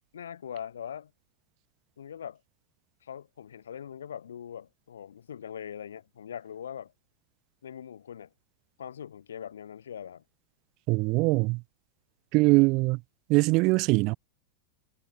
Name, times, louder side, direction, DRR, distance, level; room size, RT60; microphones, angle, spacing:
voice 1, 0.1-1.1 2.0-2.4 3.0-6.9 7.6-8.3 8.8-10.2, left 8 dB, 65° left, 0.8 m, -41 dB
voice 2, 10.9-11.6 12.3-13.0 13.3-14.1, right 25 dB, 40° right, 0.5 m, -22 dB
figure-of-eight pair, 90°, 0 cm